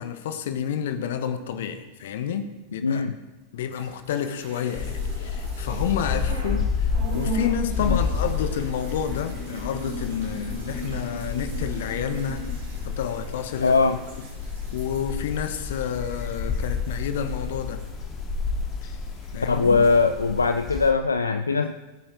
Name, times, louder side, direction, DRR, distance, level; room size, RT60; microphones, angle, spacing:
voice 1, 0.0-3.0 3.5-12.4 12.8-13.8 14.7-17.8 18.8-18.9 19.3-19.8, left 8 dB, 55° left, 10 dB, 1.1 m, -30 dB
voice 2, 2.8-3.2 7.8-8.0 13.6-14.0 19.5-21.7, left 4 dB, 75° left, 8 dB, 0.5 m, -21 dB
sound 1, 3.6-6.6 6.9-18.8 19.1-20.0, right 3 dB, 60° right, 4.5 m, -40 dB
sound 2, 4.8-20.9, left 5 dB, 30° left, 1.8 m, -30 dB
20.5 x 8.8 x 3.8 m, 1.1 s
figure-of-eight pair, 90°, 0 cm